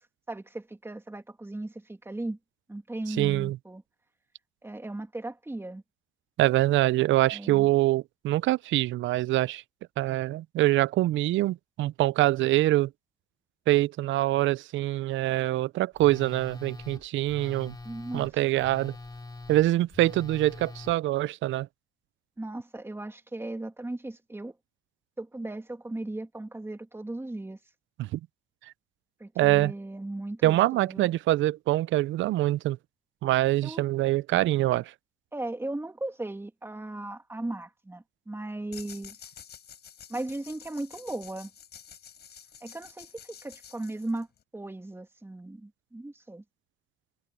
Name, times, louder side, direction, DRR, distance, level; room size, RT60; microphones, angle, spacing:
voice 1, 0.3-2.4 2.7-3.8 4.6-5.8 7.3-7.7 17.8-18.3 22.4-24.6 25.2-27.6 29.2-31.1 33.6-33.8 35.3-39.2 40.1-41.5 42.6-43.1 43.4-44.3 44.5-46.4, right 2 dB, 10° right, 2.6 m, -37 dB
voice 2, 3.1-3.6 6.4-9.6 10.0-12.9 13.7-17.7 18.1-19.0 19.5-21.7 28.0-28.2 29.4-29.7 30.4-32.8 33.2-34.9, right 16 dB, 75° right, 0.4 m, -24 dB
Telephone, 16.0-20.9, left 2 dB, 20° left, 2.5 m, -44 dB
sound 1, 38.7-44.4, left 8 dB, 55° left, 5.2 m, -49 dB
cardioid pair, 90°, 20 cm